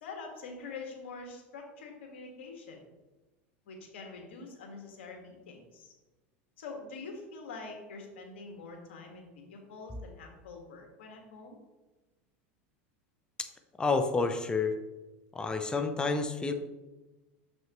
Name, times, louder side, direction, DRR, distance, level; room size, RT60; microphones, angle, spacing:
voice 1, 0.0-2.8 3.7-5.9 6.6-11.6, left 4 dB, 80° left, 2 dB, 1.6 m, -45 dB
voice 2, 13.8-14.7 15.3-16.5, left 4 dB, 15° left, 6 dB, 0.7 m, -29 dB
7.2 x 6.1 x 3.1 m, 1.1 s
hypercardioid pair, 105°, 6 cm